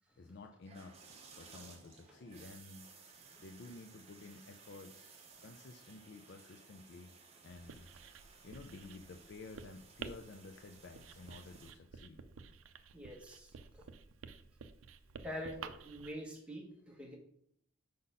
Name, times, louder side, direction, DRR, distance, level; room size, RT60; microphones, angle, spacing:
voice 1, 0.2-2.9 3.4-7.1 7.4-7.9 8.4-12.2, left 3 dB, 60° left, 5 dB, 0.4 m, -52 dB
sound 1, 0.6-11.7, right 5 dB, 30° right, 0.9 m, -59 dB
Writing, 7.5-16.1, right 5 dB, 85° right, 0.4 m, -52 dB
voice 2, 12.9-13.8 15.2-17.2, equal, 5° right, -2 dB, 1.2 m, -46 dB
5.0 x 4.0 x 5.5 m, 0.71 s
head